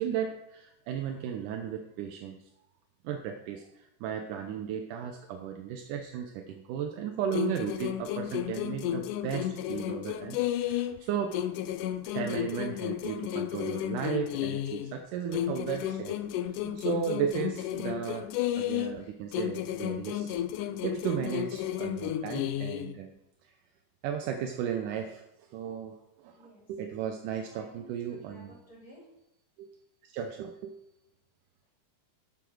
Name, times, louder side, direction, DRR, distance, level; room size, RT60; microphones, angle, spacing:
voice 1, 0.0-2.4 3.0-11.4 12.1-16.2 16.6-23.1 23.4-23.5 24.0-25.2 25.5-28.6 29.6-29.7 30.0-30.8, right 8 dB, 80° right, 5 dB, 2.3 m, -35 dB
sound 1, 7.3-11.0 11.3-14.9 15.3-19.0 19.3-22.9, left 12 dB, 80° left, 2.2 m, -33 dB
voice 2, 26.3-26.7 27.4-29.1, equal, 40° left, -4 dB, 4.5 m, -54 dB
11.0 x 8.4 x 6.3 m, 0.85 s
omnidirectional pair, 3.7 m